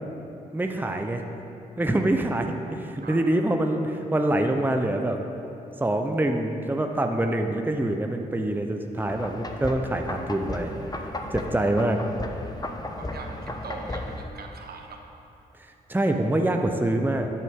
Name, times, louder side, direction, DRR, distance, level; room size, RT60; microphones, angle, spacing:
voice 1, 0.5-1.2 1.8-5.2 5.8-12.0 15.6-17.3, right 1 dB, 10° right, 4 dB, 0.8 m, -25 dB
sound 1, 9.0-14.2, left 1 dB, 20° left, 1.1 m, -35 dB
voice 2, 13.0-15.1, right 3 dB, 55° right, 3 dB, 1.2 m, -41 dB
13.0 x 8.2 x 3.7 m, 2.9 s
hypercardioid pair, 40°, 19 cm